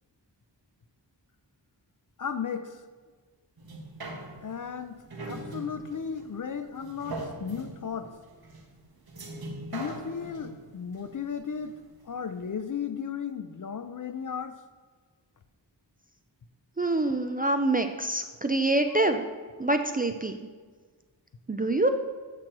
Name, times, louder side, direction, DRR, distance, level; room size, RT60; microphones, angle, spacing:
voice 1, 2.2-2.8 4.4-8.1 9.7-11.8 12.0-14.6, left 7 dB, 50° left, 10 dB, 0.4 m, -35 dB
sound 1, 3.6-12.1 12.5-12.6, right 2 dB, 55° right, 0.9 m, -41 dB
voice 2, 16.8-19.3 19.6-20.4 21.5-21.9, right 2 dB, 20° right, 6 dB, 0.3 m, -25 dB
7.7 x 5.9 x 2.9 m, 1.5 s
wide cardioid pair, 65°, 43 cm